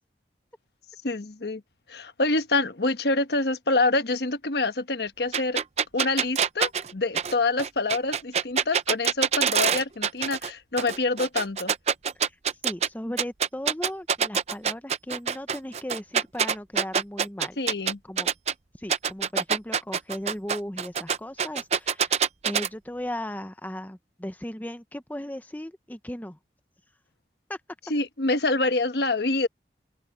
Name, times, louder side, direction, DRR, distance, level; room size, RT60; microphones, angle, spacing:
voice 1, 1.0-1.6 1.9-5.6 5.9-11.7 17.6-18.0 27.9-29.5, left 2 dB, 70° left, 1.2 m, -26 dB
sound 1, 5.3-10.5 10.8-12.9 13.2-18.5 18.9-22.7, right 7 dB, 35° right, 0.6 m, -25 dB
voice 2, 12.6-17.6 18.0-18.3 18.8-26.4 27.5-27.6, left 1 dB, 10° left, 0.8 m, -36 dB
open air
head